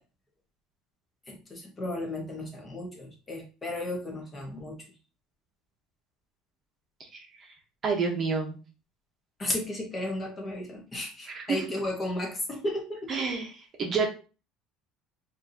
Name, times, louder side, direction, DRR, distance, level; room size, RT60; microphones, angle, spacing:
voice 1, 1.3-4.8 9.4-13.3, left 1 dB, 20° left, 0 dB, 1.1 m, -34 dB
voice 2, 7.8-8.6 11.3-11.6 13.1-13.5 13.8-14.1, right 5 dB, 30° right, 1 dB, 0.9 m, -28 dB
4.5 x 2.7 x 2.7 m, 0.34 s
cardioid pair, 140°, 0 cm